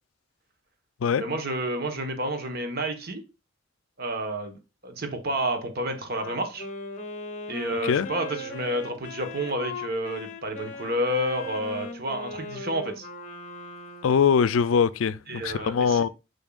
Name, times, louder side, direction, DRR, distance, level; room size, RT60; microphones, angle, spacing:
voice 1, 1.2-3.2 4.0-4.6 4.8-6.6 7.5-13.1 15.3-16.0, right 1 dB, 50° right, 1.3 m, -30 dB
Wind instrument woodwind instrument, 6.1-14.4, left 2 dB, 40° left, 0.9 m, -38 dB
voice 2, 14.0-16.1, left 6 dB, 90° left, 0.4 m, -22 dB
7.1 x 5.6 x 2.4 m
head